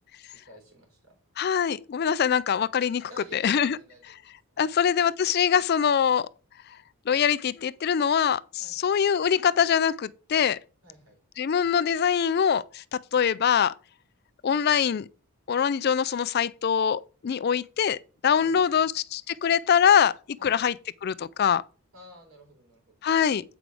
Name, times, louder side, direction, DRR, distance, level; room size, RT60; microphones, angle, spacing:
voice 1, 0.5-1.2 3.1-4.2 4.5-4.7 8.6-8.9 10.8-11.2 18.4-18.9 20.4-20.6 21.9-23.3, right 1 dB, 75° right, 3.9 m, -51 dB
voice 2, 1.4-3.8 4.6-6.3 7.1-10.6 11.4-13.7 14.4-15.1 15.5-20.7 21.0-21.6 23.0-23.4, left 7 dB, 45° left, 0.3 m, -23 dB
8.4 x 5.1 x 4.7 m
head